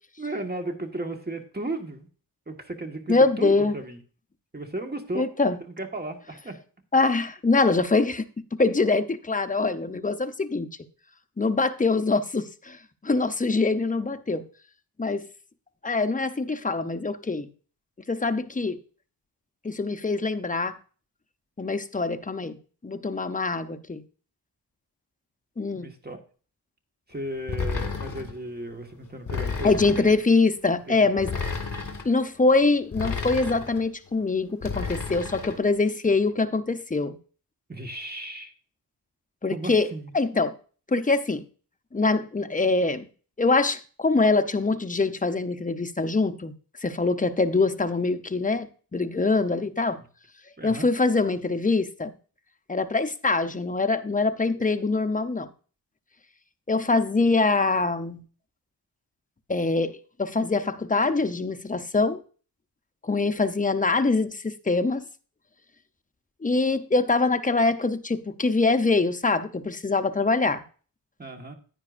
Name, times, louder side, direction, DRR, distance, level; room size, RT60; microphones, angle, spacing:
voice 1, 0.2-2.1 2.5-4.0 4.5-5.3 5.6-6.6 25.7-26.2 27.1-30.1 30.9-31.1 37.7-38.5 39.5-40.4 50.6-50.9 71.2-71.5, right 2 dB, 25° right, 1.6 m, -35 dB
voice 2, 3.1-3.7 5.1-5.6 6.9-10.7 11.4-12.8 13.0-14.4 15.0-15.2 15.8-17.5 18.1-18.8 19.6-20.8 21.6-22.6 22.8-24.0 25.6-25.9 29.6-31.3 32.0-37.2 39.4-39.9 40.1-40.5 40.9-41.4 41.9-43.1 43.4-46.5 46.8-48.7 48.9-50.0 50.6-52.1 52.7-55.5 56.7-58.2 59.5-62.2 63.0-65.0 66.4-70.6, left 3 dB, 20° left, 0.7 m, -24 dB
sound 1, 27.5-28.4 29.3-30.2 31.2-32.1 32.9-33.8 34.6-35.6, left 5 dB, 55° left, 1.9 m, -31 dB
10.0 x 9.5 x 2.5 m
cardioid pair, 75°, 41 cm